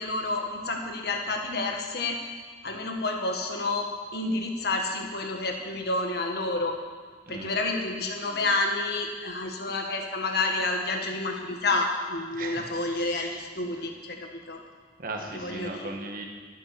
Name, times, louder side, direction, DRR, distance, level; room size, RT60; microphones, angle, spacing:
voice 1, 0.0-2.2 2.6-3.9 4.1-6.8 7.3-14.6 15.3-15.9, left 2 dB, 65° left, 2 dB, 1.7 m, -29 dB
voice 2, 7.3-7.7 12.3-13.8 15.0-16.3, right 2 dB, 55° right, 2 dB, 1.5 m, -38 dB
12.0 x 8.6 x 6.8 m, 1.5 s
head